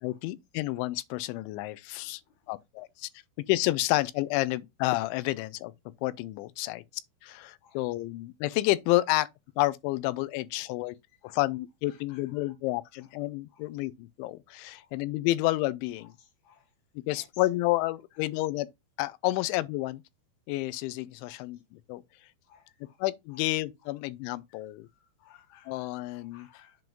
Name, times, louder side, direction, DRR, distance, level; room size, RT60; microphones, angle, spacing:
voice 1, 0.0-2.2 2.5-3.1 3.5-5.7 6.0-6.8 7.2-9.3 9.6-11.0 11.2-16.1 17.1-18.7 19.0-20.0 20.5-22.0 23.0-24.9 25.7-26.5, left 18 dB, 85° left, 2.8 m, -30 dB
voice 2, 22.5-23.0 25.2-25.8 26.3-26.8, left 8 dB, 65° left, 3.3 m, -58 dB
7.7 x 3.0 x 5.2 m
omnidirectional pair, 5.5 m